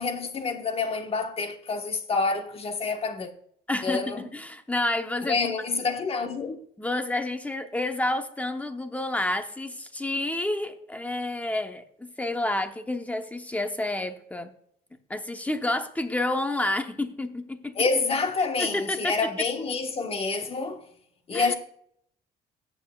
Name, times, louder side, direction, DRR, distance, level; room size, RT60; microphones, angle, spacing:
voice 1, 0.0-3.3 3.8-4.3 5.2-6.6 17.7-20.8 21.3-21.5, left 4 dB, 35° left, 1.3 m, -27 dB
voice 2, 3.7-5.4 6.8-14.5 15.1-17.8 18.6-19.1 21.3-21.5, left 1 dB, 10° left, 1.0 m, -29 dB
18.0 x 7.3 x 2.4 m
cardioid pair, 110°, 17 cm